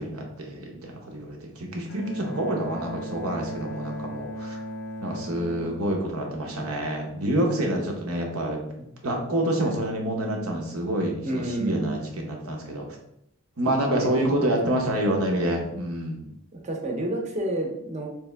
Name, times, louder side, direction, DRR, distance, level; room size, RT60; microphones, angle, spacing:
voice 1, 0.0-4.6 5.0-12.9 13.6-16.3, right 1 dB, 80° right, 1 dB, 0.9 m, -27 dB
Bowed string instrument, 1.9-6.9, equal, 55° left, 0.4 m, -38 dB
voice 2, 11.2-12.0 14.0-14.3 16.6-18.1, right 1 dB, 30° right, 1 dB, 0.6 m, -30 dB
3.4 x 2.9 x 3.3 m, 0.77 s
head